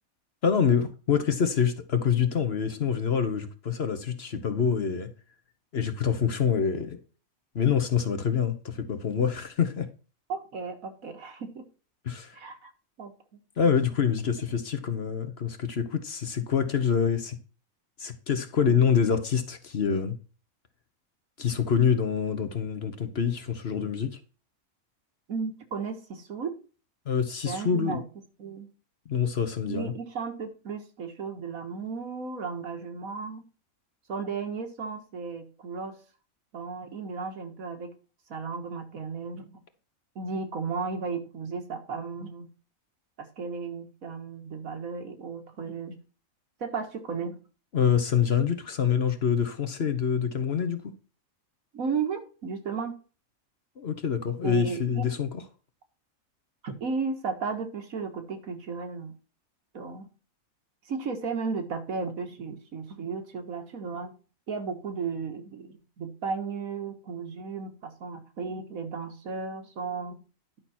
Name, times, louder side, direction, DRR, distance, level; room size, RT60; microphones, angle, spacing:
voice 1, 0.4-5.1 5.7-7.0 7.5-9.9 12.0-12.4 13.6-17.4 18.0-20.2 21.4-24.2 27.1-28.0 29.1-29.9 47.7-50.8 53.8-55.3, left 7 dB, 50° left, 1.2 m, -26 dB
voice 2, 10.3-11.6 12.3-12.7 13.0-13.4 18.6-18.8 25.3-26.5 27.5-28.0 28.4-28.7 29.7-33.4 34.1-36.0 36.5-37.9 38.3-39.6 40.2-42.5 43.2-46.0 46.6-47.4 51.7-53.0 54.4-55.1 56.6-59.1 59.7-60.1 60.9-64.1 64.5-70.2, right 5 dB, 75° right, 2.0 m, -34 dB
11.0 x 5.9 x 4.3 m
omnidirectional pair, 1.5 m